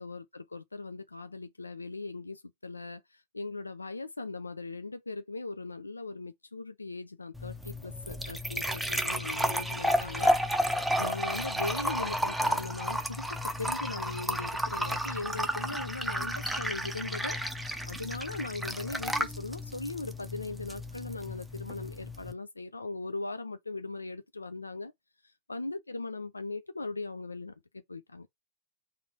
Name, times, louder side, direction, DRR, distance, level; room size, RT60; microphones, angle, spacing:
voice 1, 0.0-10.4 10.7-13.3 13.6-24.9 25.5-28.3, left 3 dB, 80° left, 0.3 m, -39 dB
sound 1, 7.3-22.3, equal, 5° right, 0.6 m, -32 dB
4.0 x 2.6 x 4.1 m
figure-of-eight pair, 90°, 0 cm